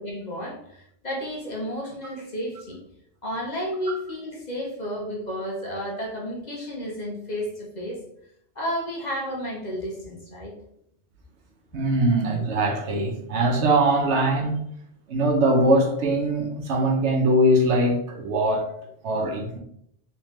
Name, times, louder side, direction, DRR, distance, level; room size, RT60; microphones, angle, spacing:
voice 1, 0.0-2.8 3.2-8.0 8.6-10.6, equal, 40° left, 0.8 m, -32 dB
voice 2, 11.7-14.6 15.1-18.7 19.0-19.6, right 1 dB, 70° right, 1.0 m, -22 dB
3.4 x 3.2 x 3.0 m
omnidirectional pair, 1.2 m